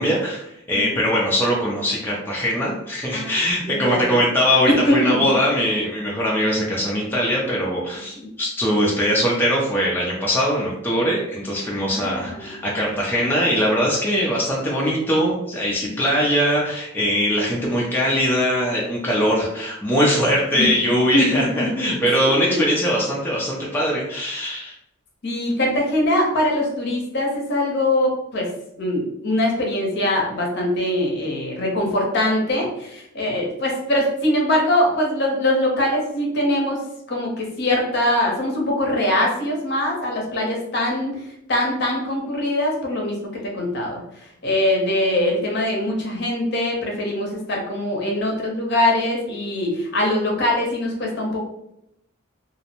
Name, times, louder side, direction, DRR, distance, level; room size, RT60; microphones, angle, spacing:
voice 1, 0.0-24.7, equal, 10° left, -4 dB, 0.4 m, -21 dB
voice 2, 0.7-1.1 3.1-4.0 4.9-5.4 8.2-8.3 11.9-12.6 15.8-16.0 20.5-20.7 21.1-21.9 22.5-22.6 25.2-28.5 28.8-36.8 37.1-41.1 41.5-43.2 43.4-44.0 44.4-51.4, left 1 dB, 55° left, -1 dB, 0.7 m, -22 dB
2.5 x 2.0 x 2.8 m, 0.80 s
head